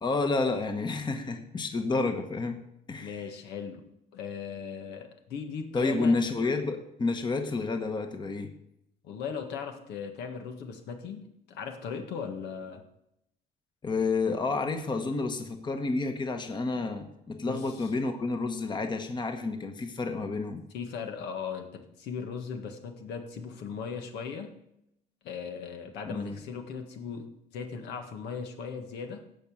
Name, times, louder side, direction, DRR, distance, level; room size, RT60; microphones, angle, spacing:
voice 1, 0.0-2.6 2.9-3.2 5.7-8.5 13.8-20.6 26.0-26.4, left 3 dB, 25° left, 6 dB, 1.2 m, -30 dB
voice 2, 3.0-3.8 4.1-6.1 9.0-12.8 17.5-17.9 20.7-24.5 25.2-27.3 27.5-29.2, left 6 dB, 80° left, 5 dB, 1.6 m, -38 dB
16.0 x 5.4 x 6.2 m, 0.79 s
cardioid pair, 110°, 17 cm